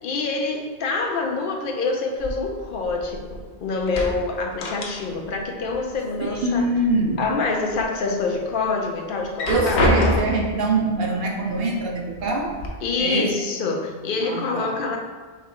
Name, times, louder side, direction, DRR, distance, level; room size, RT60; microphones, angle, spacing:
voice 1, 0.0-6.7 7.2-9.9 12.8-15.0, left 3 dB, 55° left, 1 dB, 0.8 m, -26 dB
sound 1, 2.2-3.5 3.8-5.4 5.6-6.6 7.0-7.8 8.3-8.4 9.2-10.6 11.5-11.6 12.0-12.7, left 1 dB, 90° left, 1.0 m, -26 dB
voice 2, 6.2-7.2 9.5-12.6 13.0-13.3 14.2-14.8, right 2 dB, 65° right, 0 dB, 0.9 m, -24 dB
4.6 x 3.2 x 3.6 m, 1.5 s
omnidirectional pair, 1.1 m